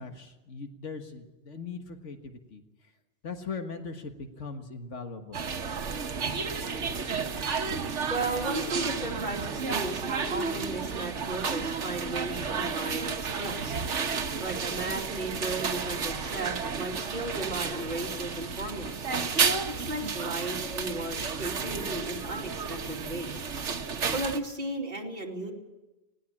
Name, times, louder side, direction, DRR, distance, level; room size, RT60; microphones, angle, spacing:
voice 1, 0.0-2.6 3.2-5.4, left 4 dB, 90° left, 6 dB, 1.9 m, -40 dB
sound 1, 5.3-24.4, right 5 dB, 85° right, 1.5 m, -32 dB
voice 2, 8.1-13.8 14.4-19.1 19.7-23.5 24.1-25.5, right 2 dB, 40° right, -1 dB, 3.0 m, -35 dB
20.0 x 17.5 x 8.5 m, 1.0 s
omnidirectional pair, 1.2 m